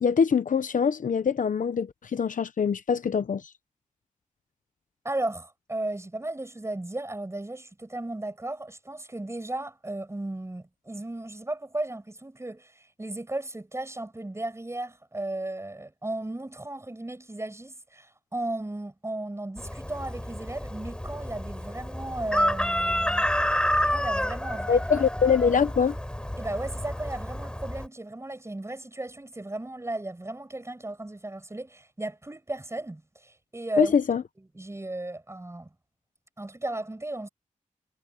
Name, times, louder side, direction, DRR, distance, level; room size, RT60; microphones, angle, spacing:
voice 1, 0.0-3.4 24.7-26.0 33.8-34.2, left 6 dB, 75° left, 0.9 m, -24 dB
voice 2, 5.0-23.3 23.9-25.0 26.4-33.9 34.5-35.7 36.4-37.3, right 2 dB, 20° right, 6.7 m, -35 dB
Chicken rooster, 19.6-27.9, equal, 5° left, 4.0 m, -29 dB
wide cardioid pair, 100°, 13 cm